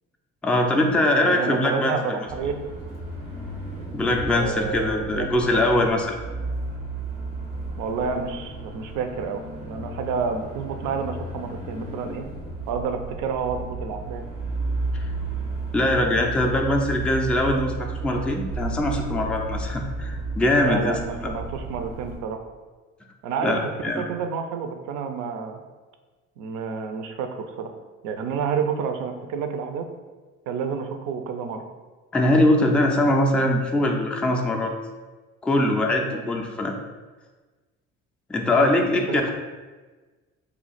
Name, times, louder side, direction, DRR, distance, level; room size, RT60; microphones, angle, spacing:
voice 1, 0.4-1.9 3.9-6.2 15.0-15.1 15.7-21.3 23.4-24.0 32.1-34.7 35.4-36.7 38.3-39.3, left 1 dB, 5° left, 1 dB, 0.3 m, -22 dB
voice 2, 1.2-2.6 4.3-5.6 7.8-12.2 12.7-14.2 20.5-22.4 23.2-23.5 24.0-25.6 26.4-27.7 28.0-29.9 30.5-31.6 36.0-36.3 38.6-38.8 39.1-39.3, right 6 dB, 55° right, 6 dB, 0.5 m, -29 dB
sound 1, 2.3-22.2, right 2 dB, 90° right, 0.8 m, -33 dB
3.2 x 2.3 x 3.9 m, 1.3 s
hypercardioid pair, 55°, 38 cm